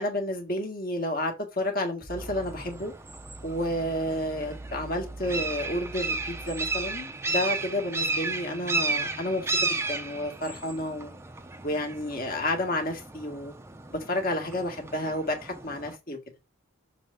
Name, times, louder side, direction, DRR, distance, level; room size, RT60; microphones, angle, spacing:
voice 1, 0.0-2.9 3.4-11.1 11.6-13.5 13.9-16.2, left 1 dB, 45° left, 1.9 m, -31 dB
sound 1, 2.1-7.0, right 2 dB, 65° left, 1.7 m, -44 dB
sound 2, 2.2-16.0, right 3 dB, 10° right, 0.5 m, -34 dB
6.8 x 3.4 x 5.2 m
head